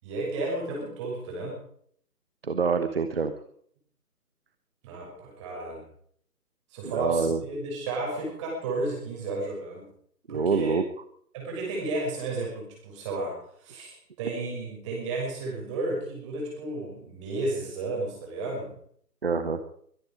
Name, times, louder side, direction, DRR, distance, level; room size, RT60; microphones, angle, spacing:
voice 1, 0.0-1.6 4.8-5.8 6.7-9.9 10.3-10.8 11.3-18.7, right 2 dB, 20° right, -1 dB, 6.3 m, -33 dB
voice 2, 2.4-3.3 6.9-7.4 10.3-10.8 19.2-19.6, right 5 dB, 40° right, 9 dB, 1.1 m, -26 dB
23.5 x 10.5 x 5.1 m, 0.63 s
figure-of-eight pair, 150°, 47 cm